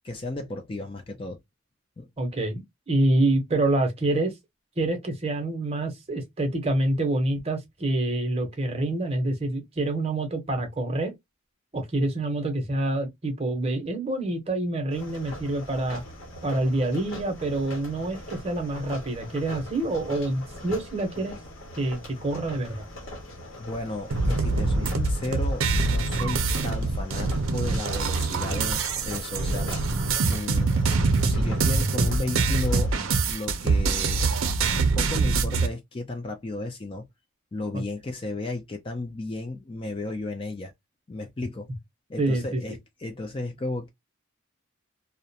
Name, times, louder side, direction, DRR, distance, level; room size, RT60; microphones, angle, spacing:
voice 1, 0.0-1.4 2.0-2.1 23.6-30.7 31.3-32.9 33.3-34.3 35.0-37.0 37.5-40.7 41.1-41.7 42.1-43.9, left 2 dB, 25° left, 0.3 m, -34 dB
voice 2, 2.2-4.3 4.8-11.1 11.7-16.0 16.4-21.3 21.8-22.9 37.7-37.8 42.2-42.6, right 2 dB, 30° right, 0.7 m, -27 dB
sound 1, 14.9-33.0, left 1 dB, 75° left, 0.8 m, -41 dB
sound 2, 24.1-35.7, right 3 dB, 75° right, 0.5 m, -24 dB
2.4 x 2.1 x 2.7 m
head